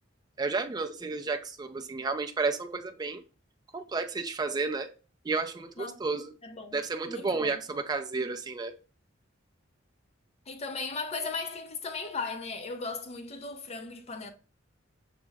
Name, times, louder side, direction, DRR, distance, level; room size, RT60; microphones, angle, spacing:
voice 1, 0.4-3.2 3.7-4.9 5.2-6.3 6.7-8.7, right 4 dB, 20° right, 0.4 m, -32 dB
voice 2, 6.4-7.6 10.5-14.3, left 4 dB, 35° left, 0.6 m, -37 dB
5.8 x 2.0 x 3.4 m
head